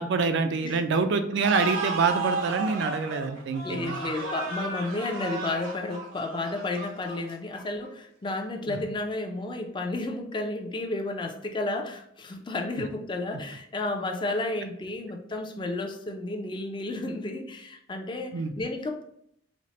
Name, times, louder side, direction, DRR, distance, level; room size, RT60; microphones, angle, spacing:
voice 1, 0.0-4.0 8.7-8.8 18.3-18.5, right 4 dB, 60° right, 9 dB, 0.3 m, -26 dB
sound 1, 1.4-7.9, right 3 dB, 90° right, 0.7 m, -34 dB
voice 2, 3.6-19.0, left 2 dB, 25° left, 3 dB, 0.4 m, -32 dB
4.1 x 2.0 x 3.1 m, 0.72 s
head